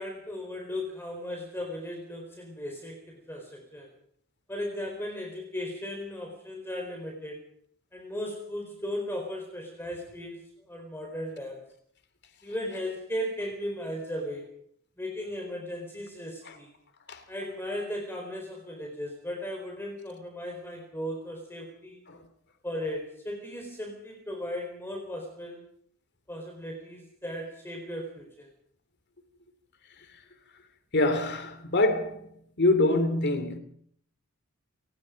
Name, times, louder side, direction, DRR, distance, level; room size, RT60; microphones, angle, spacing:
voice 1, 0.0-3.9 4.5-7.4 7.9-11.6 12.4-14.5 15.0-16.7 17.3-22.0 22.6-25.7 26.3-28.5, left 1 dB, 10° left, 4.5 m, -36 dB
voice 2, 30.9-32.3 32.6-33.6, left 2 dB, 50° left, 2.7 m, -25 dB
28.0 x 19.0 x 5.2 m
head